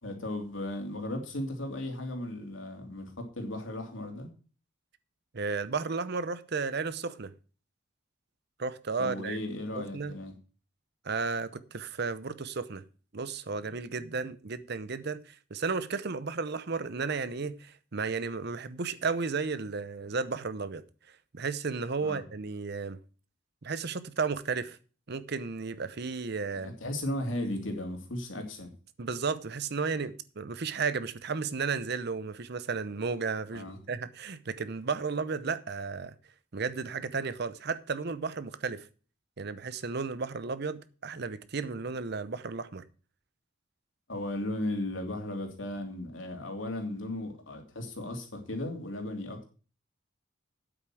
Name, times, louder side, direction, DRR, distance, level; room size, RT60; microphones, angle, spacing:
voice 1, 0.0-4.3 9.0-10.3 22.0-22.2 26.5-28.7 33.5-33.8 44.1-49.5, left 1 dB, 75° left, 2.9 m, -36 dB
voice 2, 5.3-7.3 8.6-9.4 9.8-10.2 11.0-12.8 13.1-20.8 21.3-23.0 23.6-24.8 25.1-26.7 29.0-36.1 36.5-38.9 39.4-42.8, right 4 dB, 55° right, 0.7 m, -33 dB
9.1 x 8.1 x 6.1 m
head